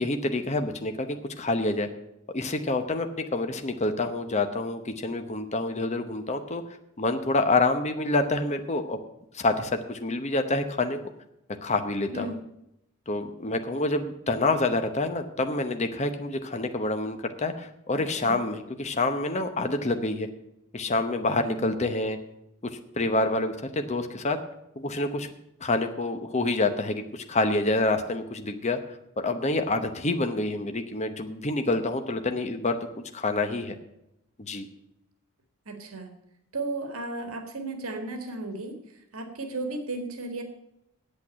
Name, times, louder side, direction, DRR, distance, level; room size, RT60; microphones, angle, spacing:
voice 1, 0.0-1.9 2.3-6.6 7.0-9.0 9.3-11.0 11.6-12.4 13.1-20.3 20.7-22.2 22.6-24.4 24.8-25.3 25.6-28.8 29.2-32.8 33.1-33.7 34.4-34.7, left 2 dB, 30° left, 7 dB, 0.8 m, -27 dB
voice 2, 12.1-12.4 18.2-18.4 21.4-21.6 35.7-36.1 36.5-38.7 39.1-40.4, right 2 dB, 80° right, 6 dB, 1.8 m, -34 dB
8.5 x 8.1 x 8.9 m, 0.83 s
head